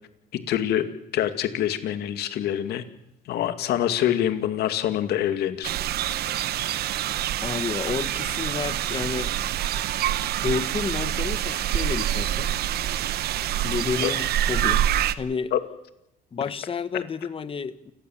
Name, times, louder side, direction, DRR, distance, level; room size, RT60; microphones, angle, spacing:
voice 1, 0.5-0.8 1.1-2.8 3.3-5.7 14.0-14.1 15.5-15.6 16.9-17.0, left 11 dB, 75° left, 9 dB, 2.3 m, -25 dB
sound 1, 5.6-15.1, right 11 dB, 70° right, 1.2 m, -26 dB
voice 2, 7.4-9.3 10.4-12.5 13.6-14.8 15.1-15.5 16.3-17.9, left 5 dB, 35° left, 13 dB, 1.4 m, -30 dB
29.0 x 17.0 x 7.4 m, 0.87 s
cardioid pair, 110°, 17 cm